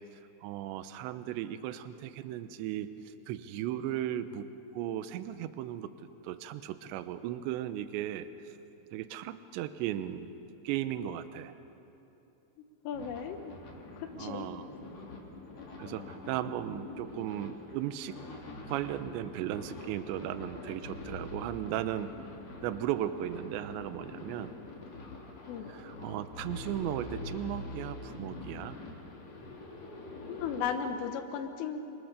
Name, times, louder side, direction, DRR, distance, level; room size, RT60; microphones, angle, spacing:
voice 1, 0.4-4.4 4.7-5.9 6.2-8.3 8.9-10.3 10.6-11.5 14.2-14.7 15.8-18.2 18.7-22.1 22.6-24.5 25.7-28.8, right 12 dB, 80° right, 11 dB, 2.8 m, -36 dB
voice 2, 12.9-13.5 14.0-14.5 25.5-25.7 30.3-31.8, left 7 dB, 80° left, 7 dB, 3.8 m, -35 dB
sound 1, 12.9-30.8, left 2 dB, 40° left, 3.2 m, -45 dB
29.0 x 24.0 x 6.8 m, 2.9 s
omnidirectional pair, 5.9 m